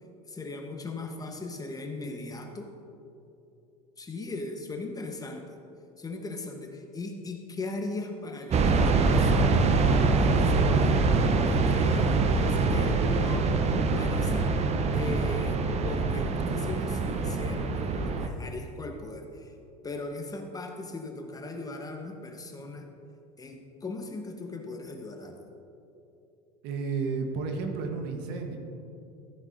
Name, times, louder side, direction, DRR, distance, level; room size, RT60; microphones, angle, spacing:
voice 1, 0.3-2.7 4.0-5.4 6.0-9.7 10.2-11.0 11.4-13.5 13.8-14.5 14.9-19.5 19.8-22.9 23.4-25.4, left 2 dB, 20° left, 4 dB, 1.1 m, -38 dB
sound 1, 8.5-18.3, right 3 dB, 30° right, 0.8 m, -24 dB
voice 2, 26.6-28.6, right 4 dB, 55° right, 4 dB, 1.2 m, -32 dB
14.0 x 9.3 x 2.6 m, 2.7 s
hypercardioid pair, 80°, 20 cm